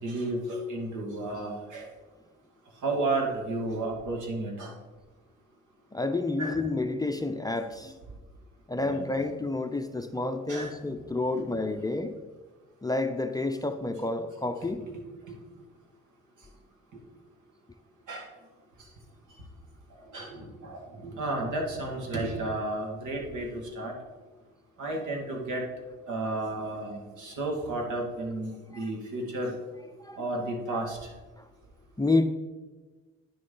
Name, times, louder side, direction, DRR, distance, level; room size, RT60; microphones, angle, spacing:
voice 1, 0.0-1.9 2.8-4.7 6.4-6.6 8.8-9.1 10.5-10.7 11.3-11.4 14.6-15.4 18.1-18.3 20.1-23.9 24.8-25.6 26.1-29.5 30.2-31.0, right 2 dB, 75° right, 0 dB, 2.0 m, -32 dB
voice 2, 5.9-7.9 8.7-12.2 12.8-14.9 28.7-28.9 30.0-30.2 30.7-30.8 31.4-31.5 32.0-32.2, left 2 dB, 15° left, 6 dB, 0.5 m, -29 dB
9.5 x 6.4 x 3.8 m, 1.3 s
cardioid pair, 90°, 30 cm